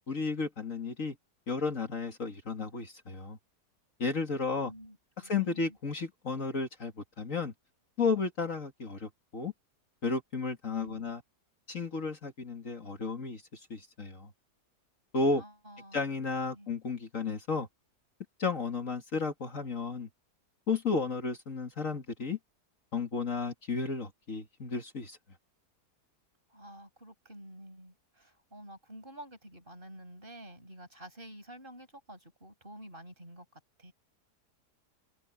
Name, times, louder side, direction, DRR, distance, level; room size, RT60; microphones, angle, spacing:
voice 1, 0.1-1.2 1.5-3.4 4.0-4.7 5.3-7.5 8.0-9.5 10.0-11.2 11.7-14.3 15.1-15.4 15.9-17.7 18.4-20.1 20.7-22.4 22.9-25.2, left 4 dB, 50° left, 2.3 m, -33 dB
voice 2, 4.5-5.8 10.8-11.2 15.3-16.0 16.3-16.7 26.5-33.9, right 1 dB, 30° right, 6.7 m, -50 dB
omnidirectional pair, 1.7 m